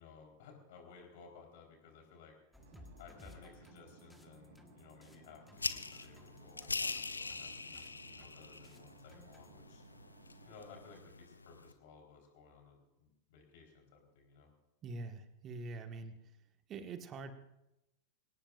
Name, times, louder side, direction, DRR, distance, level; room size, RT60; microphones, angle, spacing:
voice 1, 0.0-2.4 3.0-9.8 10.5-14.5, left 5 dB, 50° left, 2 dB, 4.1 m, -58 dB
sound 1, 2.5-9.5, left 1 dB, 5° left, 1.5 m, -61 dB
sound 2, 2.6-11.0, right 4 dB, 60° right, 3.1 m, -61 dB
sound 3, 5.5-11.7, left 3 dB, 80° left, 0.7 m, -43 dB
voice 2, 14.8-16.2 16.7-17.3, right 3 dB, 30° right, 7 dB, 1.6 m, -44 dB
24.5 x 18.0 x 2.5 m, 0.90 s
figure-of-eight pair, 90°, 0 cm